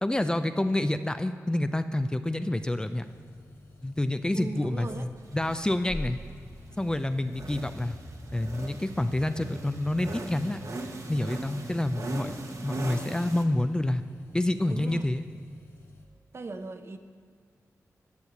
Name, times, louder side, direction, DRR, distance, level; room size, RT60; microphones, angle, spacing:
voice 1, 0.0-3.1 3.8-6.2 6.8-8.0 8.3-10.6 11.1-12.3 12.6-14.0 14.3-15.3, left 1 dB, 15° left, 9 dB, 0.4 m, -28 dB
sound 1, 2.6-16.0, left 2 dB, 35° left, 1.4 m, -48 dB
voice 2, 4.3-5.1 14.7-15.1 16.3-17.0, right 3 dB, 45° right, 8 dB, 0.7 m, -38 dB
sound 2, 5.3-13.5, right 2 dB, 60° right, 1.1 m, -40 dB
10.5 x 6.5 x 7.1 m, 2.2 s
wide cardioid pair, 95°, 6 cm